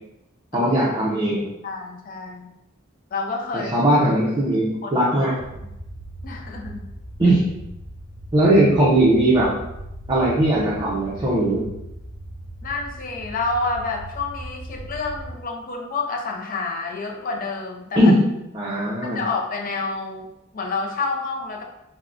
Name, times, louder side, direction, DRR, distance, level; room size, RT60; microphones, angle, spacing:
voice 1, 0.5-1.5 3.5-5.3 7.2-7.4 8.3-9.5 10.1-11.6 18.0-18.1 18.5-19.2, right 1 dB, 20° right, -7 dB, 0.5 m, -19 dB
voice 2, 1.6-2.5 3.1-3.7 4.8-5.3 5.5-5.7 6.2-6.9 12.6-18.0 19.0-21.6, left 3 dB, 40° left, 1 dB, 0.4 m, -29 dB
sound 1, 5.4-15.3, right 1 dB, 85° left, 0.9 m, -38 dB
3.5 x 2.1 x 2.4 m, 0.87 s
head